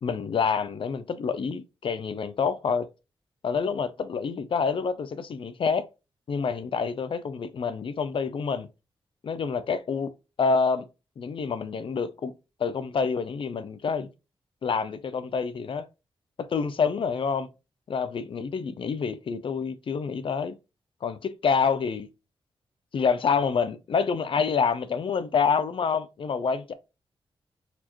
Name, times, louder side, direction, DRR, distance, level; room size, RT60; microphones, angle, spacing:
voice 1, 0.0-2.9 3.4-5.9 6.3-8.7 9.2-10.8 11.2-12.3 12.6-14.1 14.6-15.9 16.4-17.5 17.9-20.5 21.0-22.1 22.9-26.7, left 5 dB, 60° left, 0.5 m, -27 dB
4.2 x 2.9 x 2.6 m
wide cardioid pair, 100°, 10 cm